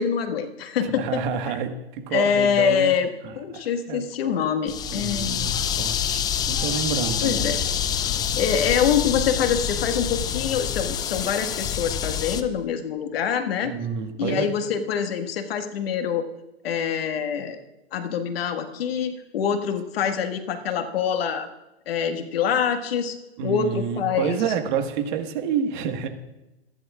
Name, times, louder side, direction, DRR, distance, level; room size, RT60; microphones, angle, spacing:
voice 1, 0.0-1.2 1.5-1.6 2.1-5.5 7.2-7.6 8.4-13.7 14.2-16.3 16.6-17.6 17.9-21.5 21.8-23.1 23.4-24.4, left 7 dB, 65° left, 6 dB, 1.8 m, -25 dB
voice 2, 0.8-2.9 3.2-4.4 4.8-7.6 13.6-14.5 23.4-26.1, right 7 dB, 50° right, 5 dB, 1.7 m, -29 dB
sound 1, 4.7-12.4, left 8 dB, 10° left, 0.4 m, -27 dB
26.5 x 11.0 x 2.5 m, 0.96 s
hypercardioid pair, 135°, 33 cm